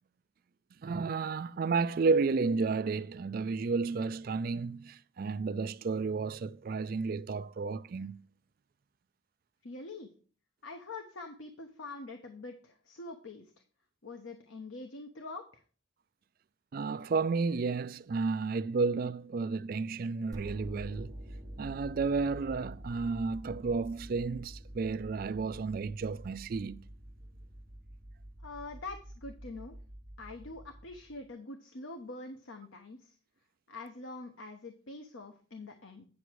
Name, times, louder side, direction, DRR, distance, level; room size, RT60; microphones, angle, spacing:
voice 1, 0.8-8.2 16.7-21.1 21.6-26.8, right 4 dB, 50° right, 0.3 m, -32 dB
voice 2, 9.6-10.1 10.6-13.5 14.0-15.6 28.4-29.8 30.2-33.1 33.7-36.1, left 3 dB, 90° left, 1.0 m, -45 dB
sound 1, 20.3-31.3, right 1 dB, 20° right, 1.3 m, -47 dB
9.5 x 6.1 x 4.6 m
head